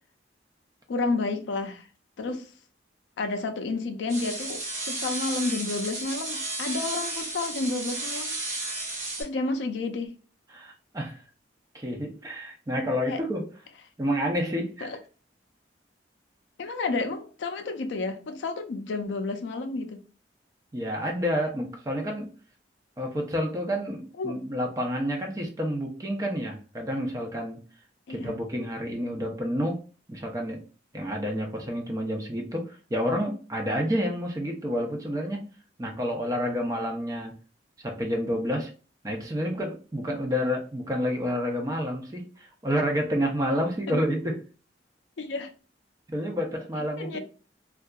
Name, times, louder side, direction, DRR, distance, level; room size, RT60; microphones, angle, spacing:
voice 1, 0.9-1.9 2.2-2.5 3.2-4.6 4.9-8.4 9.2-10.1 13.1-13.2 14.8-15.0 16.6-20.0 24.2-24.4 28.1-28.4 43.9-44.0 45.2-45.5 46.8-47.2, left 3 dB, 75° left, 0.4 m, -31 dB
sound 1, 4.1-9.2, right 2 dB, 40° right, 1.0 m, -33 dB
voice 2, 10.5-11.2 11.7-13.5 14.0-14.9 20.7-22.3 23.0-27.6 28.1-29.8 30.1-30.6 30.9-35.4 35.8-37.3 37.8-38.7 39.0-44.4 46.1-47.2, equal, 20° right, 0.5 m, -29 dB
2.7 x 2.3 x 2.2 m
head